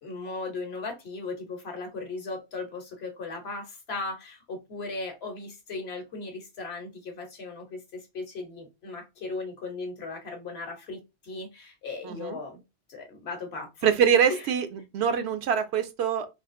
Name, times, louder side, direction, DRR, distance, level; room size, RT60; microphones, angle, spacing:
voice 1, 0.0-12.6 12.9-13.9 14.3-14.5, left 3 dB, 75° left, 1.2 m, -37 dB
voice 2, 12.0-12.4 13.8-14.7 14.9-16.3, right 8 dB, 85° right, 0.8 m, -24 dB
3.5 x 2.4 x 2.5 m
omnidirectional pair, 1.1 m